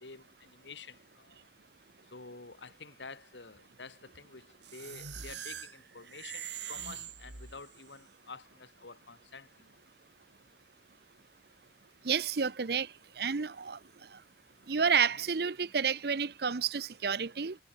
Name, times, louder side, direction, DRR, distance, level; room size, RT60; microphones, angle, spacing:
voice 1, 0.0-1.5 2.1-9.8, left 4 dB, 85° left, 1.9 m, -49 dB
sound 1, 4.6-7.9, right 8 dB, 80° right, 3.8 m, -43 dB
voice 2, 12.0-12.9 13.2-13.8 14.7-17.6, right 6 dB, 60° right, 0.7 m, -30 dB
head